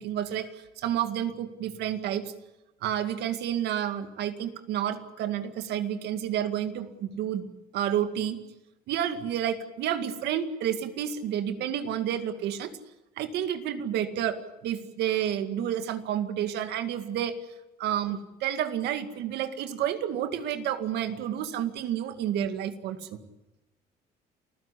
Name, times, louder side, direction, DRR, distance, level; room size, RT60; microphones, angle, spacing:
voice 1, 0.0-2.3 2.8-7.5 7.7-8.4 8.9-12.8 13.2-17.4 17.8-23.2, right 10 dB, 80° right, 9 dB, 2.2 m, -30 dB
29.0 x 15.5 x 10.0 m, 0.98 s
cardioid pair, 110°, 17 cm